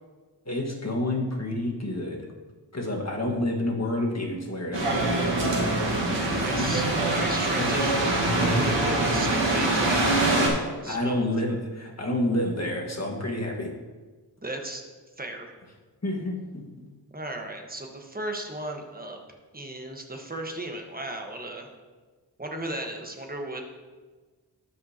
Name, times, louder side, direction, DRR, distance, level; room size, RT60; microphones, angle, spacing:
voice 1, 0.4-2.3 2.7-5.1 6.6-6.8 7.5-7.7 8.5-8.7 10.9-13.7 16.0-16.6, left 1 dB, 40° left, 0 dB, 1.6 m, -29 dB
sound 1, 4.7-10.5, right 2 dB, 80° right, 1.5 m, -24 dB
voice 2, 6.3-6.8 7.1-10.3 10.8-11.3 14.4-14.9 15.2-15.5 17.1-19.2 19.5-21.7 22.4-23.6, right 1 dB, 20° right, 3 dB, 1.3 m, -35 dB
13.0 x 5.5 x 2.9 m, 1.4 s
cardioid pair, 50°, 42 cm